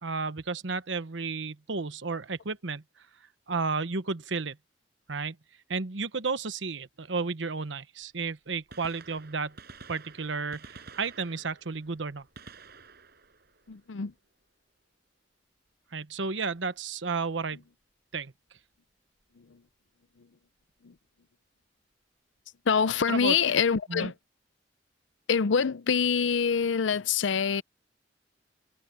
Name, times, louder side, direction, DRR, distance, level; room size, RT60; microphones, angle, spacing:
voice 1, 0.0-2.8 3.5-4.6 5.1-5.4 5.7-9.5 9.9-12.3 15.9-17.6 18.1-18.3 23.1-23.6 23.9-24.1, right 4 dB, 85° right, 1.0 m, -32 dB
Gunshot gunfire, 8.0-8.1 8.6-14.4 16.4-16.5 17.5-17.6 19.2-19.3 20.7-20.8 21.0-21.1, right 4 dB, 60° right, 5.5 m, -51 dB
voice 2, 13.7-14.1 19.4-19.6 20.8-20.9 22.7-24.1 25.3-27.6, left 6 dB, 90° left, 0.6 m, -25 dB
head